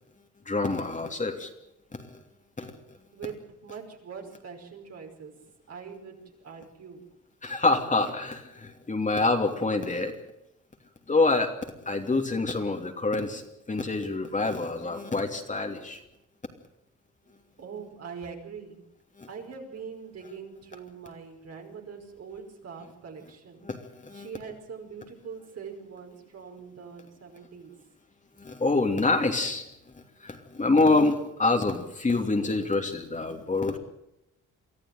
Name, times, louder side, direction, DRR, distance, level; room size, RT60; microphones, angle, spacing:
voice 1, 0.5-1.5 1.9-2.1 2.6-2.7 7.4-10.1 11.1-16.0 19.2-19.3 23.6-24.3 28.4-29.6 30.2-33.8, left 3 dB, 25° left, 4 dB, 2.8 m, -26 dB
voice 2, 3.1-5.3 5.7-7.0 17.6-18.8 19.3-23.6 24.1-27.8, right 6 dB, 55° right, 2 dB, 5.3 m, -42 dB
24.0 x 14.0 x 9.3 m, 0.83 s
cardioid pair, 90°, 30 cm